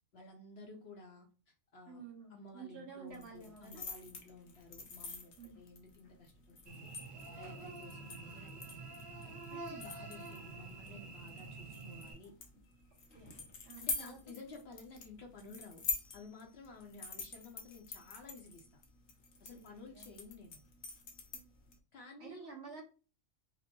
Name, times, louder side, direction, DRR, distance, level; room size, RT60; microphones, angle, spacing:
voice 1, 0.1-2.0 2.3-6.9 7.4-8.6 9.2-12.3 13.8-15.8 16.1-18.8 19.4-20.6 21.9-22.6, left 3 dB, 60° left, 2 dB, 0.8 m, -53 dB
voice 2, 1.9-3.8 5.4-5.6 11.4-11.6 13.1-13.4 13.6-14.2 19.5-20.1 21.3-21.4 22.2-22.8, right 5 dB, 55° right, -3 dB, 1.5 m, -51 dB
sound 1, 3.1-21.7, left 4 dB, 85° left, 1.2 m, -46 dB
Cricket / Buzz, 6.7-12.1, right 3 dB, 90° right, 1.9 m, -48 dB
5.0 x 2.0 x 2.9 m, 0.35 s
omnidirectional pair, 1.4 m